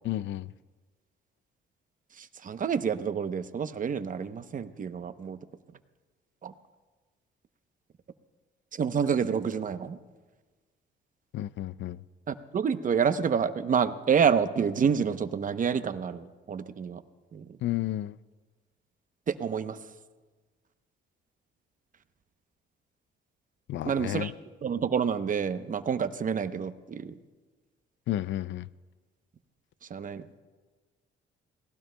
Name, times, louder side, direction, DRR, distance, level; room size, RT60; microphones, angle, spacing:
voice 1, 0.0-0.5 11.3-12.0 17.6-18.2 23.7-24.3 28.1-28.7, left 14 dB, 70° left, 0.4 m, -32 dB
voice 2, 2.2-5.4 6.4-6.5 8.8-10.0 12.3-17.0 17.3-17.4 19.3-19.8 23.8-24.3 24.6-27.1 29.9-30.2, right 7 dB, 40° right, 0.8 m, -28 dB
30.0 x 18.5 x 2.2 m
cardioid pair, 90°, 20 cm